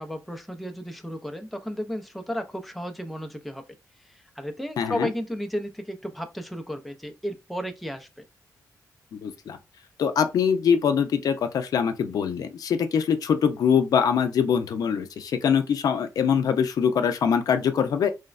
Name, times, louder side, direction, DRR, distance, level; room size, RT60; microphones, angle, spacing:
voice 1, 0.0-3.6 4.0-8.2, equal, ahead, 0.3 m, -33 dB
voice 2, 4.8-5.1 9.1-9.6 10.0-18.1, left 7 dB, 70° left, 0.4 m, -23 dB
3.1 x 2.0 x 2.3 m
wide cardioid pair, 150°, 7 cm